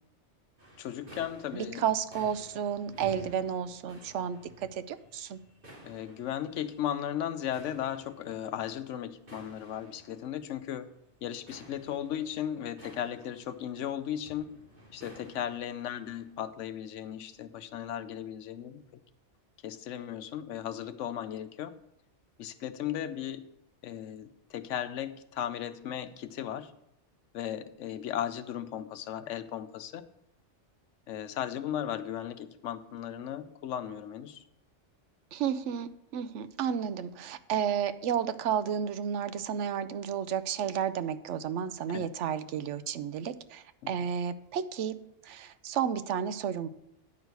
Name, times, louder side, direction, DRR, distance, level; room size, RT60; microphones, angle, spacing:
sound 1, 0.6-16.3, equal, 45° right, 2.6 m, -54 dB
voice 1, 0.8-1.9 5.8-10.9 11.2-14.5 14.9-18.8 19.6-21.8 22.4-23.4 23.8-26.7 27.3-30.1 31.1-34.4 41.9-42.1 43.8-43.9, left 10 dB, 90° left, 12 dB, 1.0 m, -36 dB
voice 2, 1.5-5.4 35.3-45.0 45.2-46.7, right 8 dB, 80° right, 12 dB, 0.9 m, -32 dB
9.6 x 4.7 x 6.6 m, 0.80 s
omnidirectional pair, 1.2 m